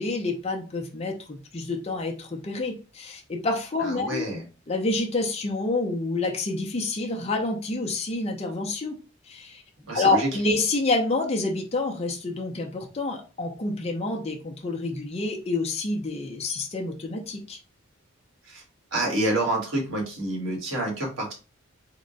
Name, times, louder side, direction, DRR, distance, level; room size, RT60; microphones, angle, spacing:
voice 1, 0.0-4.2 4.7-9.0 9.3-9.6 9.9-17.6, left 2 dB, 30° left, 1 dB, 0.6 m, -28 dB
voice 2, 3.8-4.4 9.9-10.3 18.5-18.6 18.9-21.3, right 1 dB, 80° right, 0 dB, 1.5 m, -28 dB
3.7 x 2.1 x 3.8 m, 0.33 s
head